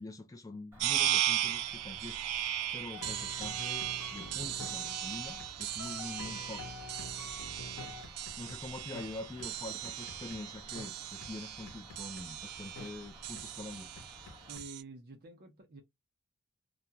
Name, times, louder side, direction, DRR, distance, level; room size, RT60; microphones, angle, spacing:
voice 1, 0.0-2.2 2.7-6.7 8.4-13.9, left 2 dB, 15° left, 0.3 m, -45 dB
Cricket, 0.7-14.6, equal, 10° right, 1.1 m, -54 dB
sound 1, 0.8-14.8, right 12 dB, 90° right, 0.3 m, -37 dB
sound 2, 2.9-5.5 5.8-8.6 8.9-9.1 9.4-9.5 9.8-10.4 10.8-10.9 11.2-11.3 11.7-12.2 12.8-12.9 13.4-13.5 14.0-14.7, left 3 dB, 80° left, 0.8 m, -47 dB
voice 2, 14.5-15.8, right 3 dB, 45° right, 0.6 m, -49 dB
2.4 x 2.2 x 2.7 m
head